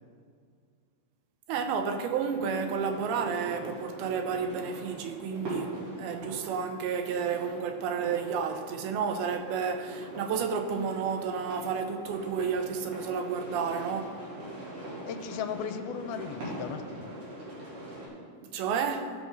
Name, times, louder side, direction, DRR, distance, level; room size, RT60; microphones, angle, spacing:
voice 1, 1.5-14.2 18.4-19.1, right 6 dB, 90° right, 2.7 m, -31 dB
sound 1, 2.3-18.1, equal, 55° right, 4.1 m, -42 dB
voice 2, 15.1-17.1, left 7 dB, 85° left, 2.4 m, -36 dB
16.5 x 6.3 x 3.9 m
omnidirectional pair, 4.3 m